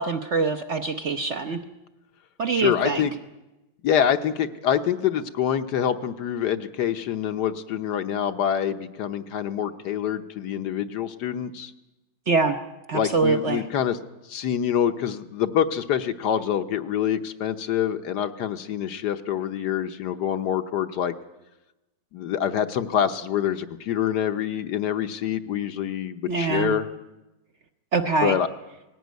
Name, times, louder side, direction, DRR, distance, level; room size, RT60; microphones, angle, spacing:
voice 1, 0.0-1.6 2.4-3.1 12.3-12.6 12.9-13.6 26.3-26.7 27.9-28.4, right 4 dB, 50° right, 6 dB, 0.9 m, -24 dB
voice 2, 2.5-3.1 3.8-11.7 12.9-14.0 14.3-21.1 22.1-26.9 28.2-28.5, left 9 dB, 65° left, 9 dB, 1.4 m, -26 dB
18.5 x 16.0 x 9.3 m, 1.0 s
omnidirectional pair, 2.0 m